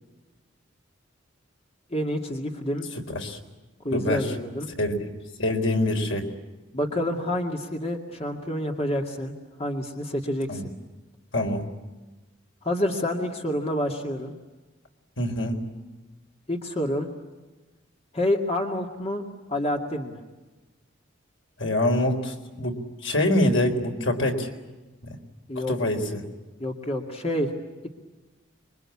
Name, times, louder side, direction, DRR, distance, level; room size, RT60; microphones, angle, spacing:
voice 1, 1.9-2.9 3.8-4.7 6.7-9.3 9.6-10.6 12.6-14.3 16.5-17.1 18.1-19.2 19.5-20.2 25.5-25.8 26.6-27.5, left 1 dB, 30° left, 2 dB, 2.2 m, -28 dB
voice 2, 3.1-3.4 3.9-4.3 4.8-5.1 5.4-6.3 10.5-10.7 11.3-11.6 15.2-15.6 21.6-24.5 25.0-25.2 25.7-26.2, left 1 dB, 75° left, 3 dB, 4.1 m, -25 dB
27.0 x 23.5 x 8.6 m, 1.2 s
head